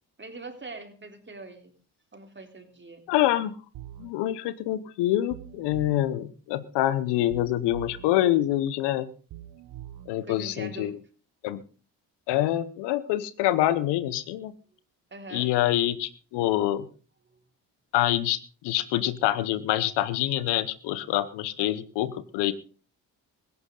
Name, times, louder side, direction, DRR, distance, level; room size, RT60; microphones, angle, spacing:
voice 1, 0.2-1.7 2.1-3.0 10.2-10.9 15.1-15.5 17.3-17.4, right 3 dB, 25° right, 5 dB, 3.6 m, -42 dB
voice 2, 3.1-3.5 4.0-9.1 10.1-11.0 11.4-11.6 12.3-14.5 15.3-16.9 17.9-18.4 18.6-22.5, left 14 dB, 80° left, 15 dB, 1.0 m, -26 dB
sound 1, 3.7-4.1 5.3-6.1 7.3-8.1 9.3-10.1, right 12 dB, 70° right, 1.3 m, -43 dB
16.5 x 15.0 x 3.9 m, 0.37 s
supercardioid pair, 55°, 40 cm